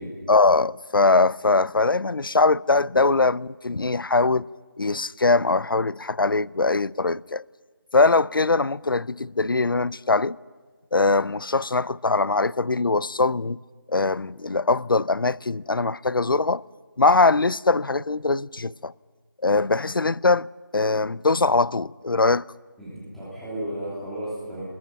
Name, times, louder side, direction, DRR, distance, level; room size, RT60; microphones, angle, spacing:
voice 1, 0.3-4.5 4.8-7.4 7.9-10.4 10.9-13.6 13.9-16.6 17.0-18.9 19.4-20.5 20.7-22.5, left 3 dB, 85° left, 0.6 m, -21 dB
voice 2, 22.8-24.6, right 1 dB, ahead, 3.0 m, -33 dB
28.0 x 21.0 x 5.8 m
figure-of-eight pair, 175°, 11 cm